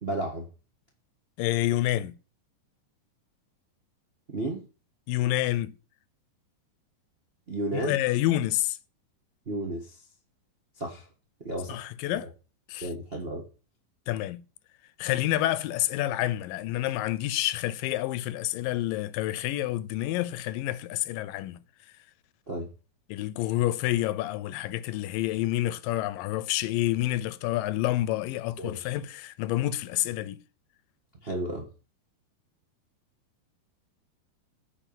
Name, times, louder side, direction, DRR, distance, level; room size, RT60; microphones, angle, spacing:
voice 1, 0.0-0.4 4.3-4.6 7.5-8.0 9.5-9.9 10.8-11.0 11.4-11.8 12.8-13.4 22.5-22.7 28.6-28.9 31.2-31.6, right 1 dB, 70° right, 0.5 m, -32 dB
voice 2, 1.4-2.2 5.1-5.8 7.7-8.8 11.7-12.3 12.7-12.9 14.1-14.4 15.0-21.6 23.1-30.4, left 15 dB, 85° left, 2.3 m, -28 dB
9.2 x 4.6 x 7.2 m
omnidirectional pair, 3.9 m